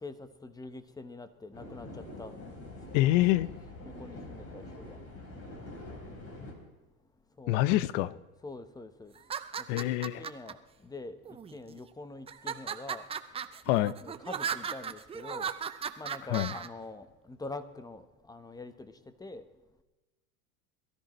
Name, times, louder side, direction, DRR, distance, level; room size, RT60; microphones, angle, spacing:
voice 1, 0.0-1.9 2.2-2.3 2.9-3.0 3.8-5.0 7.4-7.8 8.4-9.1 9.7-11.2 11.5-13.0 14.0-15.5 16.0-18.9 19.2-19.4, left 3 dB, 10° left, 1.0 m, -44 dB
sound 1, 1.5-6.5, left 2 dB, 30° left, 3.7 m, -45 dB
voice 2, 2.9-3.5 7.5-8.2 9.7-10.2 13.7-13.9 16.3-16.5, left 16 dB, 55° left, 0.7 m, -26 dB
sound 2, 9.2-10.5 11.3-11.8 12.3-16.7, right 7 dB, 15° right, 0.5 m, -36 dB
22.5 x 13.5 x 3.1 m
hypercardioid pair, 110°, 44 cm